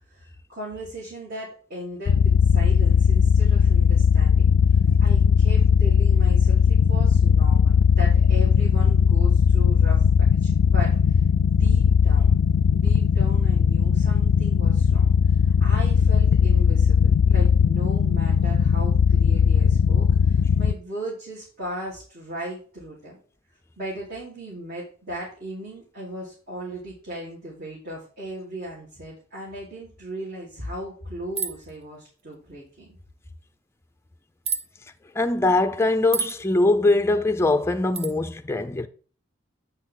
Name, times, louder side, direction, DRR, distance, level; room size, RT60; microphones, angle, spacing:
voice 1, 0.0-4.5 5.0-10.0 10.4-12.4 12.7-23.2 23.8-33.0, right 1 dB, 55° right, 3.8 m, -37 dB
sound 1, 2.1-20.7, left 6 dB, 75° left, 0.3 m, -18 dB
sound 2, 31.4-31.7 34.4-34.7 36.1-36.4 37.9-38.1, right 5 dB, 30° right, 0.6 m, -28 dB
voice 2, 35.2-38.9, left 2 dB, 15° left, 0.5 m, -22 dB
8.7 x 6.4 x 3.9 m
head